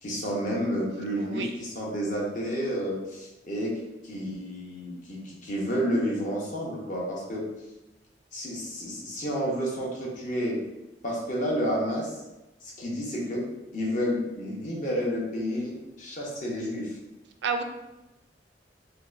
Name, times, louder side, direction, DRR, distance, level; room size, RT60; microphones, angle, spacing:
voice 1, 0.0-3.7 4.0-7.4 8.3-10.6 11.0-12.2 12.6-13.4 13.7-17.0, equal, 50° left, -3 dB, 0.9 m, -30 dB
voice 2, 1.2-1.5 17.4-17.6, right 5 dB, 80° right, 6 dB, 0.4 m, -30 dB
4.3 x 2.2 x 2.5 m, 0.98 s
head